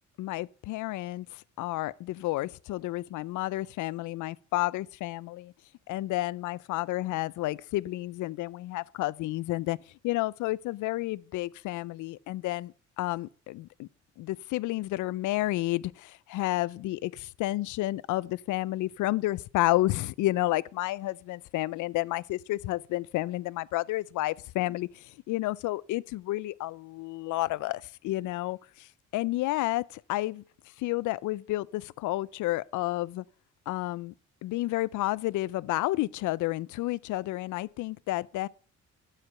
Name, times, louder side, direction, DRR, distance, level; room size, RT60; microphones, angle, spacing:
voice 1, 0.2-5.5 5.9-9.8 10.0-13.9 14.2-28.9 29.1-30.4 30.8-33.2 33.7-34.1 34.4-38.5, left 17 dB, 80° left, 0.5 m, -31 dB
11.5 x 5.0 x 5.6 m
cardioid pair, 90°, 30 cm